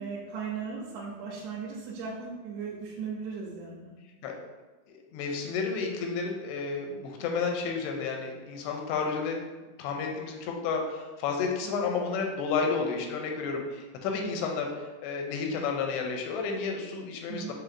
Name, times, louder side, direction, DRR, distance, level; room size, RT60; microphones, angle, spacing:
voice 1, 0.0-3.9 11.6-11.9 14.2-14.4 17.3-17.5, right 5 dB, 90° right, -5 dB, 2.8 m, -37 dB
voice 2, 4.9-9.4 9.8-17.5, left 5 dB, 85° left, 2 dB, 2.6 m, -31 dB
7.3 x 2.6 x 2.5 m, 1.2 s
omnidirectional pair, 4.7 m